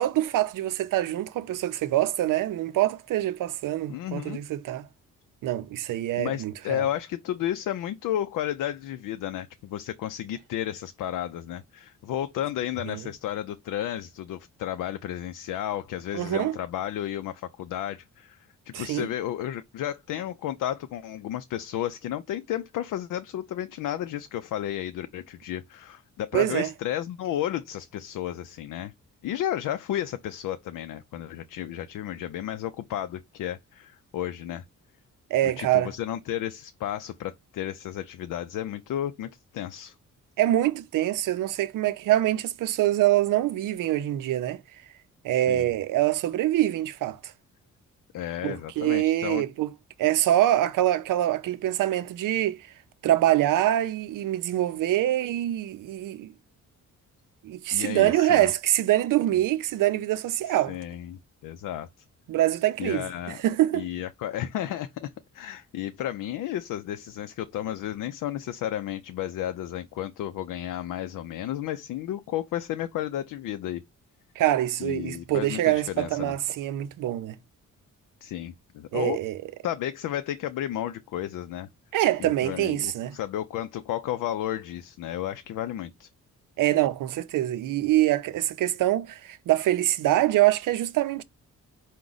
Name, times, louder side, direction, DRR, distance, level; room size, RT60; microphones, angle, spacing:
voice 1, 0.0-4.9 5.4-6.9 12.9-13.0 16.1-16.6 18.7-19.1 26.3-26.7 35.3-35.9 40.4-44.6 45.2-47.3 48.4-49.7 50.0-52.7 53.0-56.3 57.4-60.8 62.3-63.9 74.4-77.4 78.9-79.4 81.9-83.1 86.6-91.2, right 14 dB, 90° right, 0.5 m, -25 dB
voice 2, 3.9-4.4 6.2-28.9 29.2-34.6 35.6-39.9 45.3-45.7 48.1-49.4 57.7-58.5 60.5-61.9 62.8-63.4 63.7-73.8 74.8-76.3 78.2-79.2 79.6-81.7 82.2-86.1, left 11 dB, 85° left, 0.5 m, -32 dB
4.8 x 2.2 x 3.8 m
cardioid pair, 140°, 31 cm